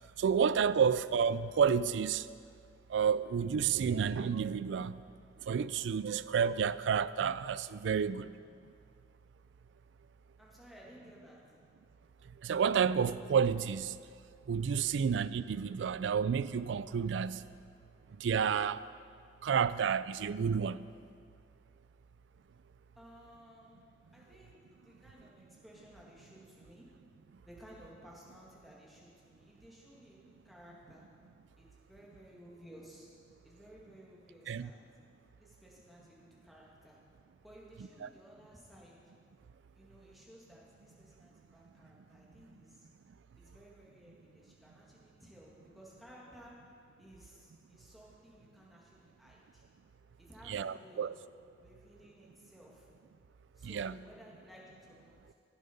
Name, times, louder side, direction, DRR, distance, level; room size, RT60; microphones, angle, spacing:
voice 1, 0.2-2.2 2.9-4.9 5.5-8.3 12.4-13.9 14.5-17.4 18.2-18.8 19.4-20.8 34.5-34.7 38.0-38.1 50.5-51.1 53.6-54.0, right 7 dB, 75° right, 0.3 m, -30 dB
voice 2, 10.4-11.4 23.0-26.9 27.4-31.1 31.6-33.1 33.4-34.8 35.4-37.0 37.4-38.9 39.7-42.9 43.4-46.5 47.0-49.6 50.2-51.1 51.6-52.9 53.6-55.2, equal, ahead, 2.0 m, -57 dB
16.0 x 7.2 x 5.4 m
head